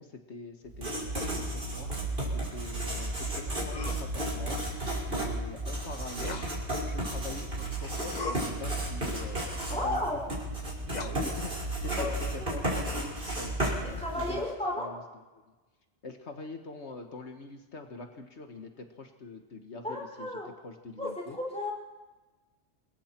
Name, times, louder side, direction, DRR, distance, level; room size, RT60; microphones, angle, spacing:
voice 1, 0.0-1.9 2.3-4.6 5.1-6.4 6.8-10.2 10.9-14.4 14.8-15.0 16.0-21.4, left 3 dB, 75° left, 4 dB, 1.7 m, -44 dB
Writing, 0.7-14.5, right 1 dB, 55° right, 6.1 m, -33 dB
sound 1, 3.7-4.1 6.2-6.6 8.1-8.5 10.9-11.2, left 3 dB, 40° left, 1.4 m, -37 dB
voice 2, 9.7-10.2 12.0-12.1 12.4-12.5 13.8-14.9 19.8-20.5 21.0-21.7, left 1 dB, 5° left, -2 dB, 6.0 m, -33 dB
28.5 x 21.5 x 4.5 m, 1.2 s
omnidirectional pair, 1.2 m